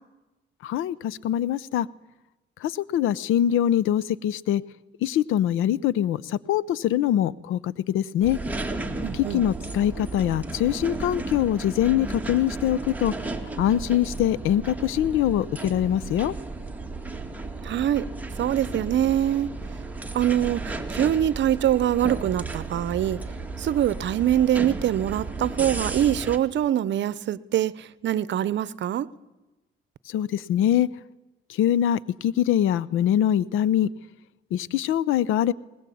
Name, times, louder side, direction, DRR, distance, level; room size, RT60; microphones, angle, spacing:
voice 1, 0.6-1.9 2.6-4.6 5.0-8.4 9.1-13.2 13.6-16.3 30.1-30.9 31.5-33.9 34.5-35.5, left 11 dB, 85° left, 0.8 m, -23 dB
sound 1, 8.2-26.4, right 2 dB, 10° right, 2.3 m, -34 dB
voice 2, 9.0-9.4 17.6-18.1 18.4-19.5 20.1-23.2 23.6-29.1, right 11 dB, 65° right, 0.8 m, -24 dB
20.5 x 20.0 x 8.6 m
cardioid pair, 90°, 20 cm